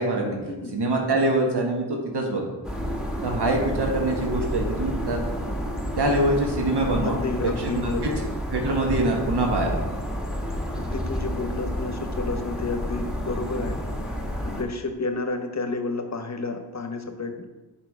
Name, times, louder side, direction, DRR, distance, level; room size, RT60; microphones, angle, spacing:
voice 1, 0.0-0.4 0.7-2.4 3.2-5.2 6.0-7.2 7.7-8.1 8.5-9.8, right 2 dB, 65° right, 1 dB, 1.4 m, -24 dB
sound 1, 2.6-14.6, equal, ahead, 1.0 m, -30 dB
voice 2, 7.0-8.1 10.8-13.8 14.4-17.5, left 3 dB, 40° left, 6 dB, 0.9 m, -30 dB
10.5 x 4.8 x 3.6 m, 1.2 s
wide cardioid pair, 90°, 43 cm